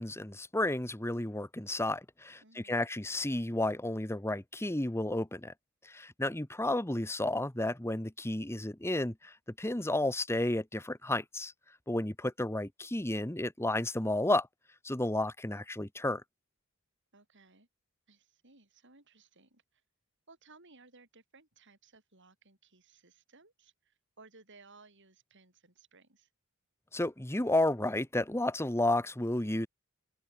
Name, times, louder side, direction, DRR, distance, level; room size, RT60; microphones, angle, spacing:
voice 1, 0.0-5.5 5.8-11.5 11.9-14.5 14.8-16.2 26.9-29.7, left 1 dB, 10° left, 1.3 m, -32 dB
voice 2, 2.4-2.9 17.1-17.7 18.1-19.8 20.3-26.3, right 3 dB, 55° right, 7.7 m, -60 dB
open air
head